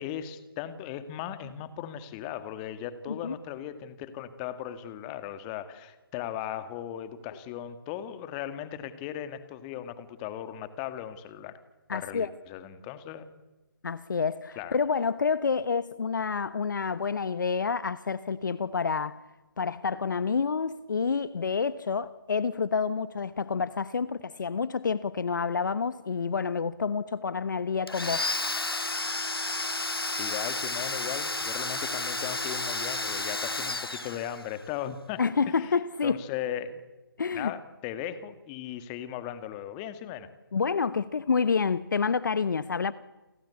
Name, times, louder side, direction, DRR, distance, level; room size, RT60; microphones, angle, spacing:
voice 1, 0.0-11.6 11.9-13.4 14.6-14.8 30.2-35.2 35.5-35.8 36.0-36.8 37.4-40.3, left 10 dB, 20° left, 2.0 m, -37 dB
voice 2, 11.9-12.3 13.8-19.2 19.6-28.3 35.2-36.2 37.2-37.5 40.5-42.9, left 5 dB, 55° left, 1.0 m, -28 dB
Domestic sounds home sounds, 27.9-34.7, left 2 dB, 85° left, 1.7 m, -32 dB
29.5 x 23.5 x 8.4 m
figure-of-eight pair, 145°, 12 cm